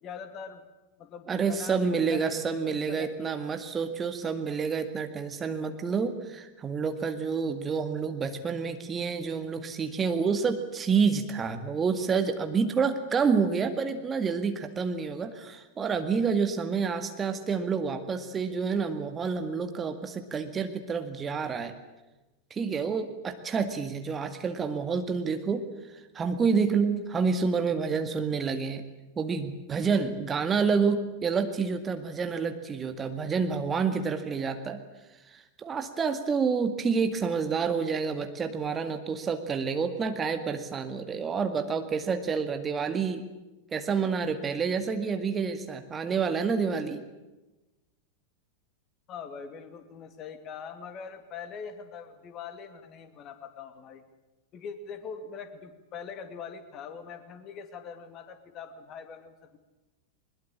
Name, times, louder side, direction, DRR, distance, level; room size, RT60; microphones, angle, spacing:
voice 1, 0.0-0.6 1.0-3.3 49.1-54.0 54.5-59.6, left 6 dB, 35° left, 9 dB, 2.5 m, -42 dB
voice 2, 1.3-21.7 22.5-25.7 26.1-28.8 29.2-34.8 35.3-43.2 43.7-47.0, right 5 dB, 20° right, 7 dB, 2.0 m, -28 dB
22.0 x 21.5 x 8.8 m, 1.1 s
figure-of-eight pair, 90°, 0 cm